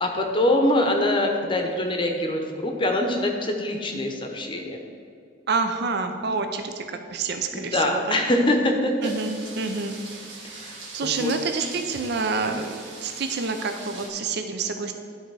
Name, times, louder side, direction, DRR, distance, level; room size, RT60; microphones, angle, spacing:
voice 1, 0.0-4.8 7.5-8.9 10.5-11.3, left 1 dB, 25° left, 3 dB, 0.7 m, -24 dB
voice 2, 5.5-8.2 9.0-9.9 10.5-14.9, right 4 dB, 60° right, 6 dB, 0.5 m, -28 dB
sound 1, 9.0-14.1, right 3 dB, 80° right, 1.6 m, -41 dB
12.0 x 4.1 x 4.7 m, 2.3 s
head